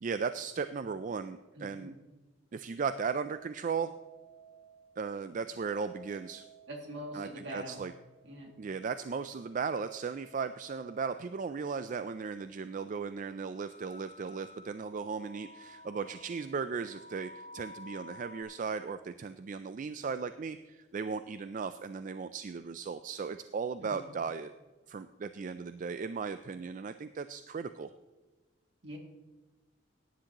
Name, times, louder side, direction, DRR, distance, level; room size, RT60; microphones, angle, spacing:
voice 1, 0.0-1.9 2.5-3.9 5.0-6.4 7.1-7.9 8.6-24.5 24.9-27.9, right 5 dB, 40° right, 11 dB, 0.3 m, -36 dB
voice 2, 1.6-2.0 6.7-7.8 8.3-8.5 23.8-24.1 28.8-29.0, equal, 65° right, 1 dB, 2.4 m, -43 dB
sound 1, 3.7-5.0 5.5-7.2 7.6-8.7 9.8-11.5 12.1-12.2 13.1-13.3 13.6-18.4, equal, 35° left, 2.9 m, -54 dB
17.5 x 10.0 x 2.9 m, 1.2 s
head